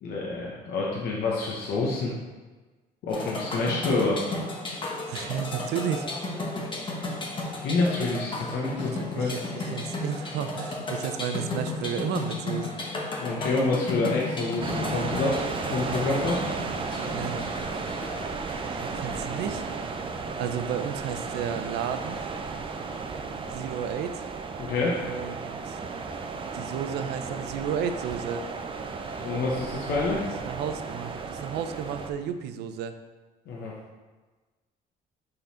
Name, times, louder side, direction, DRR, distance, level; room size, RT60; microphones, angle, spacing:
voice 1, 0.0-2.1 3.0-4.2 7.6-9.4 13.2-15.4 15.7-16.4 24.6-25.0 29.2-30.3 33.5-33.7, left 3 dB, 70° left, -4 dB, 1.0 m, -27 dB
sound 1, 3.1-19.9, left 2 dB, 30° left, 1.1 m, -34 dB
voice 2, 5.1-6.4 8.8-12.8 17.1-17.7 18.6-19.6 20.4-22.2 23.5-24.2 25.0-25.4 25.7-25.8 26.5-28.4 30.4-32.9, right 8 dB, 80° right, 9 dB, 0.5 m, -33 dB
sound 2, 14.6-32.1, right 4 dB, 30° right, 0.5 m, -34 dB
5.8 x 4.0 x 4.3 m, 1.3 s
cardioid pair, 110°, 17 cm